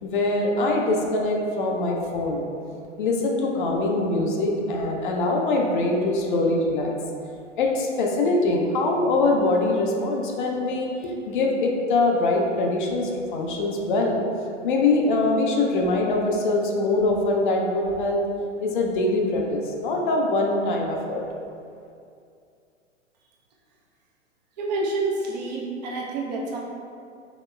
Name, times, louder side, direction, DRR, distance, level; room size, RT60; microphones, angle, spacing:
voice 1, 0.0-2.5 3.0-6.9 7.6-14.2 14.6-18.2 18.6-21.2, left 2 dB, 45° left, 0 dB, 0.5 m, -23 dB
voice 2, 24.6-26.6, right 2 dB, 35° right, -2 dB, 0.5 m, -28 dB
4.8 x 2.9 x 2.2 m, 2.4 s
figure-of-eight pair, 105°, 38 cm